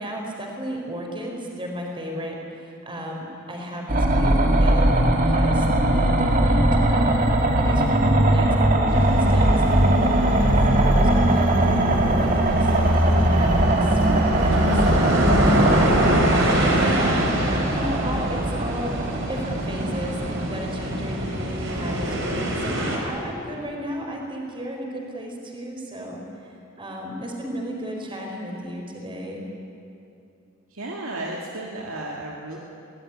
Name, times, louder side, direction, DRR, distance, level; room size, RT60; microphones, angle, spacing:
voice 1, 0.0-15.9 16.5-29.4, equal, 25° right, 1 dB, 4.4 m, -34 dB
sound 1, 3.9-22.7, right 1 dB, 40° right, 2.1 m, -20 dB
sound 2, 8.9-23.0, right 1 dB, 65° right, 4.6 m, -26 dB
voice 2, 30.7-32.6, right 1 dB, 85° right, -2 dB, 2.3 m, -33 dB
23.0 x 18.0 x 9.9 m, 2.6 s
head